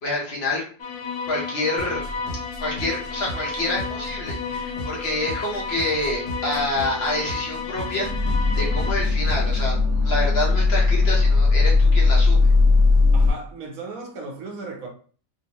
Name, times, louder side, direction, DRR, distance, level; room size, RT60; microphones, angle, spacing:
voice 1, 0.0-0.6 1.3-2.0 2.6-12.5, left 2 dB, 50° left, 1.0 m, -27 dB
sound 1, 0.8-8.9, left 5 dB, 90° left, 1.1 m, -32 dB
sound 2, 1.8-9.8, equal, 70° left, 1.8 m, -37 dB
sound 3, 4.1-4.2 5.9-6.0 6.4-13.3, left 3 dB, 30° right, 1.4 m, -19 dB
voice 2, 13.1-14.9, right 3 dB, 70° right, 1.3 m, -36 dB
3.4 x 2.7 x 2.9 m
omnidirectional pair, 1.5 m